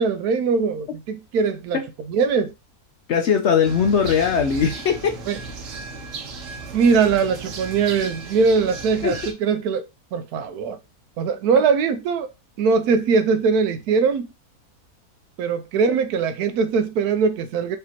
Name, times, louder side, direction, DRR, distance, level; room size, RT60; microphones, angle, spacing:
voice 1, 0.0-1.8 2.1-2.5 5.3-5.4 6.7-9.8 10.1-10.8 11.2-12.3 12.6-14.3 15.4-17.8, right 5 dB, 85° right, 1.1 m, -21 dB
voice 2, 3.1-5.2 9.0-9.2, left 7 dB, 65° left, 0.7 m, -20 dB
sound 1, 3.6-9.3, right 3 dB, 60° right, 1.1 m, -35 dB
4.9 x 2.8 x 2.9 m
omnidirectional pair, 1.6 m